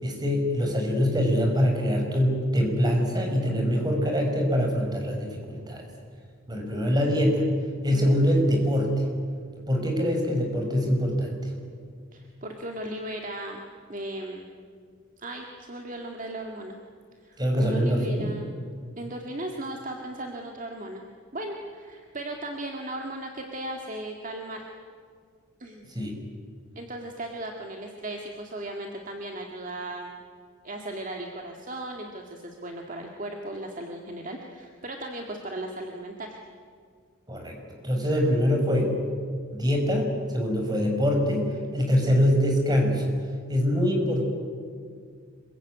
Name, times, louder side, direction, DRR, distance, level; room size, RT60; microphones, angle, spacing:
voice 1, 0.0-5.8 6.5-7.5 7.8-9.0 9.7-11.5 17.4-18.3 25.9-26.1 37.3-37.6 37.8-39.0 39.5-43.1 43.5-44.2, equal, 20° right, 2 dB, 5.2 m, -24 dB
voice 2, 12.1-13.6 13.9-14.5 15.2-16.8 17.2-18.6 19.0-21.0 21.3-24.6 25.6-25.9 26.8-30.1 30.6-36.4, right 1 dB, 40° right, 2 dB, 2.0 m, -36 dB
26.0 x 22.5 x 9.4 m, 2.1 s
head